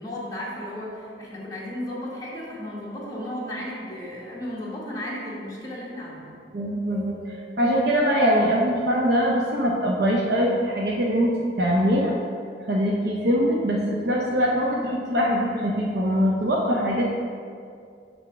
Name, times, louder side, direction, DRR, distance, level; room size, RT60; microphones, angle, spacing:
voice 1, 0.0-6.4, left 1 dB, 20° left, -6 dB, 1.2 m, -34 dB
voice 2, 6.5-11.3 11.6-12.1 12.7-17.0, equal, 60° right, -2 dB, 0.6 m, -22 dB
5.9 x 3.5 x 5.8 m, 2.3 s
head